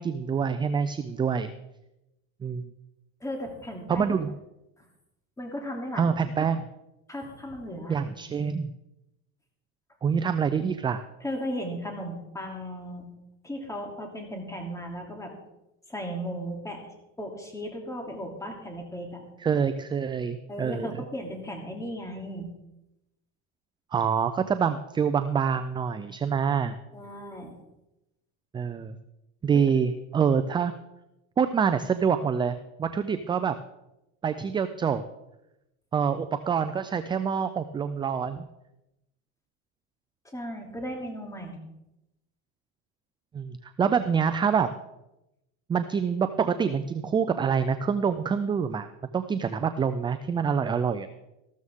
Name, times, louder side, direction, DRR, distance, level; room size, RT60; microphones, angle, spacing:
voice 1, 0.0-1.5 2.4-2.6 3.9-4.3 6.0-6.6 7.9-8.7 10.0-11.0 19.4-20.9 23.9-26.7 28.5-29.0 29.4-30.7 31.4-33.6 34.2-35.0 35.9-38.4 43.3-44.7 45.7-48.9 49.1-51.1, right 6 dB, 15° right, 10 dB, 0.3 m, -26 dB
voice 2, 3.2-4.1 4.8-4.9 5.4-6.1 7.1-8.0 11.2-13.1 13.4-15.3 15.9-16.8 17.2-19.2 20.5-22.5 26.9-27.6 40.3-41.6, equal, 10° left, 1 dB, 2.7 m, -36 dB
14.0 x 13.0 x 3.6 m, 0.91 s
supercardioid pair, 125°, 37 cm